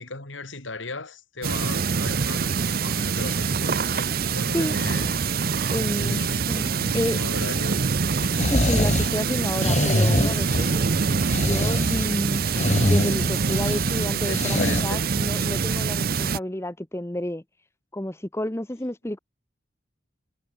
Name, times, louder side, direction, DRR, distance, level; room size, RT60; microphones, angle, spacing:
voice 1, 0.0-5.6 6.0-6.5 6.8-7.8 14.2-15.1, left 2 dB, 80° left, 3.4 m, -36 dB
sound 1, 1.4-16.4, right 5 dB, 50° right, 0.6 m, -25 dB
Drum, 2.1-4.6, right 1 dB, 70° right, 3.5 m, -45 dB
voice 2, 5.7-6.2 6.5-7.2 8.5-10.7 11.5-12.4 12.8-17.4 17.9-19.2, left 1 dB, 15° left, 0.9 m, -30 dB
sound 2, 8.1-14.8, left 1 dB, 35° left, 2.2 m, -25 dB
head